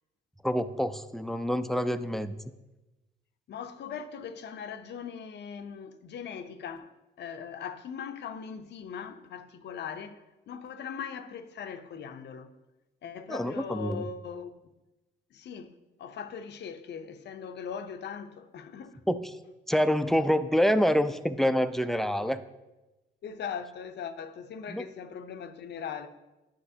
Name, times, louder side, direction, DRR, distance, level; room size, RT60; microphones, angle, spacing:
voice 1, 0.4-2.3 13.3-14.0 19.1-19.2 19.7-22.4 24.7-24.8, equal, ahead, 0.3 m, -26 dB
voice 2, 3.5-12.5 13.0-14.5 15.3-15.7 16.0-19.0 23.2-26.1, left 7 dB, 60° left, 0.6 m, -40 dB
9.8 x 5.8 x 2.7 m
cardioid pair, 90°, 20 cm